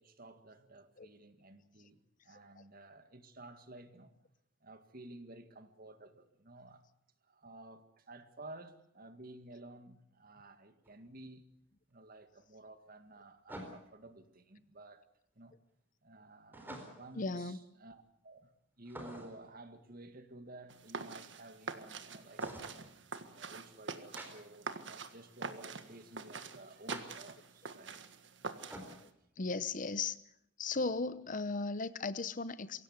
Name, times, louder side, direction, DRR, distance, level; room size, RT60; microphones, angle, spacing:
voice 1, 0.0-4.1 4.6-6.8 7.3-11.4 11.9-15.0 15.4-15.6 16.0-18.5 18.8-22.6 23.2-28.0, right 2 dB, 50° right, 2.0 m, -53 dB
sound 1, 10.8-10.9 13.5-14.0 16.5-17.2 18.9-19.5 22.4-22.8 24.2-24.3 26.9-27.0 28.7-29.0, right 1 dB, 10° right, 4.2 m, -47 dB
voice 2, 17.2-17.7 29.4-30.2 30.6-32.8, left 3 dB, 45° left, 0.8 m, -37 dB
sound 2, 20.7-29.1, right 4 dB, 65° right, 1.7 m, -45 dB
24.0 x 17.0 x 8.2 m
head